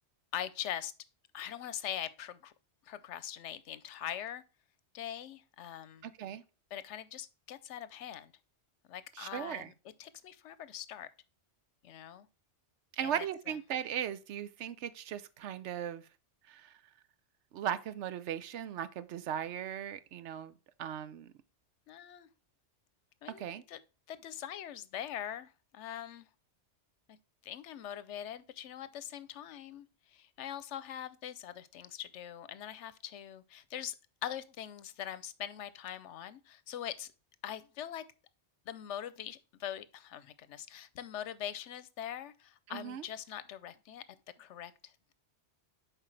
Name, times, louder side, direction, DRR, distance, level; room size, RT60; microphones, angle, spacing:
voice 1, 0.3-0.9 1.3-2.5 2.9-4.4 4.9-6.0 6.7-8.3 8.9-9.7 10.0-11.1 11.8-12.3 13.0-13.5 21.9-22.3 23.2-23.8 24.1-26.3 27.1-27.2 27.4-34.0 34.2-37.1 37.4-38.0 38.7-44.0 44.4-45.1, left 10 dB, 85° left, 1.0 m, -42 dB
voice 2, 6.0-6.4 9.1-9.7 12.9-16.1 16.5-16.7 17.5-20.5 20.8-21.3 23.4-23.6 42.7-43.1, right 9 dB, 80° right, 0.9 m, -38 dB
7.5 x 4.8 x 3.3 m
omnidirectional pair, 1.2 m